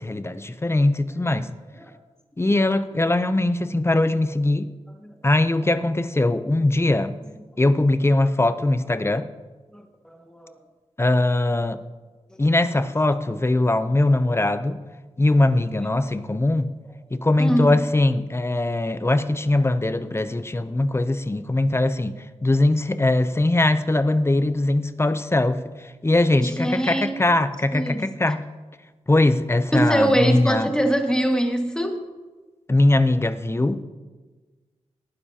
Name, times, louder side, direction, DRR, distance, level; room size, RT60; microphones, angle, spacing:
voice 1, 0.0-1.5 2.4-4.7 5.2-7.2 7.6-9.3 11.0-11.8 12.4-14.8 15.2-16.7 17.1-22.2 22.4-25.6 26.0-28.4 29.1-30.7 32.7-33.8, left 2 dB, 20° left, 12 dB, 0.6 m, -21 dB
voice 2, 10.1-10.5 17.4-17.7 26.4-27.2 27.7-28.0 29.7-32.0, right 1 dB, 5° left, 3 dB, 1.8 m, -23 dB
18.5 x 10.0 x 2.9 m, 1.3 s
cardioid pair, 60°, 12 cm